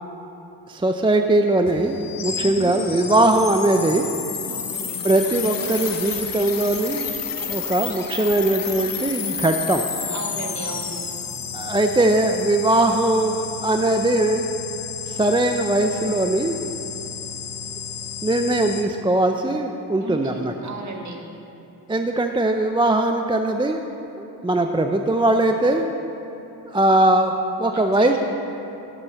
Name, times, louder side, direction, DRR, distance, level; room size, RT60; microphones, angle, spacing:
voice 1, 0.7-4.1 5.0-7.1 7.5-9.9 11.5-14.5 15.1-16.6 18.2-20.7 21.9-23.8 24.2-25.9 26.7-28.2, right 2 dB, 10° right, 5 dB, 0.4 m, -20 dB
sound 1, 1.7-18.8, left 7 dB, 50° left, 0.8 m, -31 dB
voice 2, 2.4-2.8 4.4-5.0 10.1-11.0 15.5-15.7 20.0-21.2 27.7-28.2, right 2 dB, 40° right, 1 dB, 1.4 m, -35 dB
10.0 x 8.0 x 4.2 m, 3.0 s
cardioid pair, 50°, 45 cm